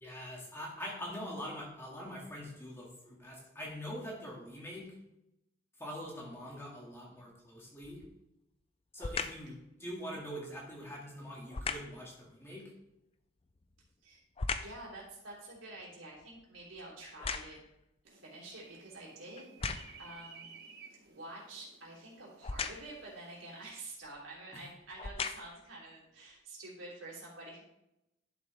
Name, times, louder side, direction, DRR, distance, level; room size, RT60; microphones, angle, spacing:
voice 1, 0.0-4.9 5.8-8.0 8.9-12.6, equal, 15° left, -3 dB, 2.2 m, -44 dB
sound 1, 7.8-8.2 9.0-9.5 11.5-12.0 13.4-14.9 15.3-17.8 18.5-18.6 19.4-20.1 22.4-23.0 24.0-24.2 24.8-25.7 26.3-26.4, left 4 dB, 30° left, 0.4 m, -39 dB
voice 2, 14.6-17.6 18.0-19.6 20.0-20.5 21.0-27.6, right 2 dB, 85° right, -4 dB, 3.4 m, -48 dB
sound 2, 18.0-23.7, right 5 dB, 55° right, 1.0 m, -56 dB
11.0 x 6.8 x 3.5 m, 0.86 s
head